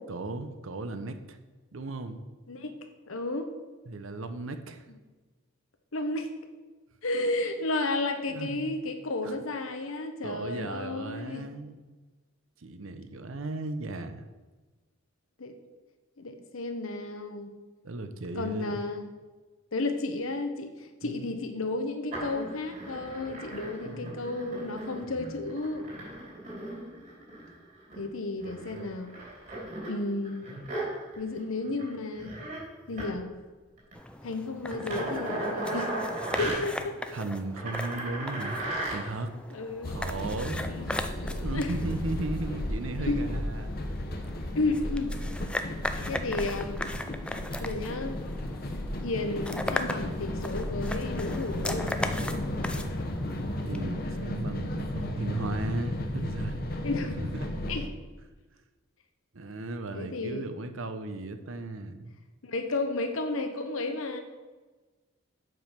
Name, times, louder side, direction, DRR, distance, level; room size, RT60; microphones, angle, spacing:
voice 1, 0.1-1.4 1.7-2.3 3.9-4.9 8.3-8.8 9.2-9.3 10.2-11.8 12.6-14.2 17.8-18.8 21.0-21.4 23.8-24.1 37.1-38.6 38.9-39.4 39.9-40.6 41.4-43.7 53.6-56.6 56.9-57.5 59.3-62.1, right 2 dB, 75° right, 9 dB, 0.7 m, -36 dB
voice 2, 3.1-3.5 5.9-6.3 7.0-11.4 15.4-15.5 16.2-17.5 18.3-19.1 19.7-25.9 28.0-29.1 29.9-30.5 31.2-32.3 32.9-33.3 34.2-35.9 36.4-36.9 39.5-40.0 40.7-40.9 41.5-41.7 43.0-43.2 44.5-45.1 46.1-46.8 47.6-48.2 49.0-51.9 56.8-57.2 57.7-57.9 59.9-60.5 62.4-64.2, left 2 dB, 80° left, 7 dB, 1.0 m, -32 dB
sound 1, 22.1-28.0 28.4-31.4 31.6-31.9 32.1-32.6 32.9-33.1 33.8-33.9 34.7-36.5 37.5-38.9 40.2-40.3, right 1 dB, 40° right, 2.9 m, -36 dB
sound 2, 33.9-53.8, left 1 dB, 5° left, 0.3 m, -39 dB
sound 3, 39.8-57.9, left 1 dB, 45° left, 0.9 m, -34 dB
7.7 x 5.2 x 5.9 m, 1.3 s
head